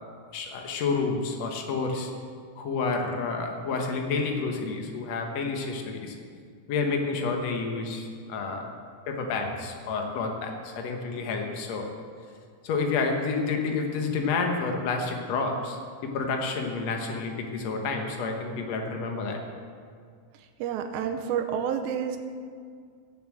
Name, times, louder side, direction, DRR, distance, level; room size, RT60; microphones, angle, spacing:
voice 1, 0.3-2.1 2.6-6.1 6.7-8.7 9.1-11.9 12.6-19.4, left 4 dB, 75° left, 2 dB, 1.5 m, -29 dB
voice 2, 20.6-22.2, right 8 dB, 85° right, 6 dB, 3.0 m, -29 dB
16.0 x 7.2 x 7.8 m, 2.1 s
omnidirectional pair, 5.0 m